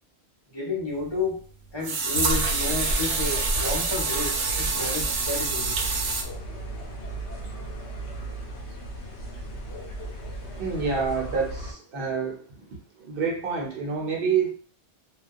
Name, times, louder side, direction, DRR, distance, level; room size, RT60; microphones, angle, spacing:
voice 1, 0.5-1.4 1.7-5.8, left 3 dB, 30° left, -3 dB, 0.6 m, -31 dB
sound 1, 1.0-1.1 1.8-6.2, right 4 dB, 85° right, 0.9 m, -27 dB
sound 2, 2.3-11.7, right 1 dB, 90° left, 1.0 m, -34 dB
voice 2, 10.6-12.4 13.0-14.5, right 5 dB, 60° right, 0 dB, 0.9 m, -27 dB
2.3 x 2.2 x 2.5 m, 0.43 s
omnidirectional pair, 1.1 m